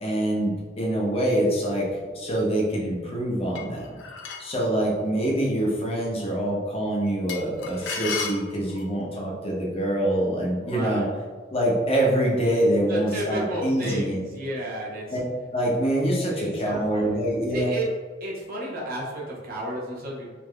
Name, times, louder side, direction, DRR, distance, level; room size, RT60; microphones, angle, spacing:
voice 1, 0.0-4.0 4.4-11.1 11.5-14.2 15.1-15.2 15.5-17.7, right 1 dB, 30° left, -4 dB, 0.6 m, -25 dB
sound 1, 3.5-4.6 7.3-9.0, left 5 dB, 90° left, 0.5 m, -34 dB
voice 2, 10.6-11.1 12.9-15.2 16.4-17.2 17.5-17.9 18.2-20.3, right 1 dB, 55° right, -4 dB, 0.7 m, -32 dB
3.3 x 2.5 x 2.2 m, 1.5 s
head